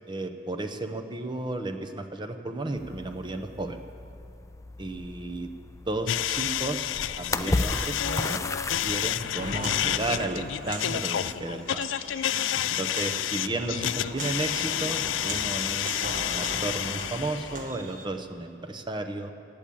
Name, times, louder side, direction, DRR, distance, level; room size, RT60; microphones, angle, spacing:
voice 1, 0.1-3.8 4.8-5.5 5.9-6.9 7.2-8.4 8.8-11.8 12.7-19.3, right 2 dB, 25° right, 6 dB, 0.8 m, -33 dB
sound 1, 2.8-9.5, left 2 dB, 15° left, 0.4 m, -34 dB
sound 2, 6.1-17.7, left 11 dB, 90° left, 0.4 m, -30 dB
Walk footsteps, 9.3-18.0, right 2 dB, 45° right, 1.4 m, -39 dB
16.0 x 8.6 x 8.6 m, 2.9 s
head